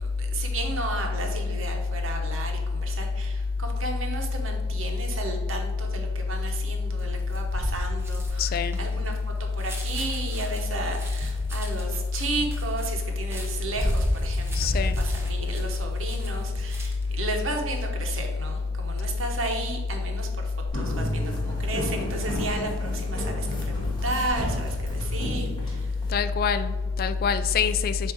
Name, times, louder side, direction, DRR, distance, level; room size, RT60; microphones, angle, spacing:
voice 1, 0.0-9.1 9.4-25.9, right 3 dB, 80° right, 3 dB, 1.0 m, -34 dB
sound 1, 7.0-17.2 17.5-17.9, equal, 10° right, 0.8 m, -33 dB
voice 2, 8.4-8.8 14.5-15.0 26.1-28.1, left 6 dB, 45° left, 11 dB, 0.3 m, -25 dB
sound 2, 20.7-26.1, equal, 20° left, 1.4 m, -33 dB
7.8 x 2.7 x 4.9 m, 1.3 s
head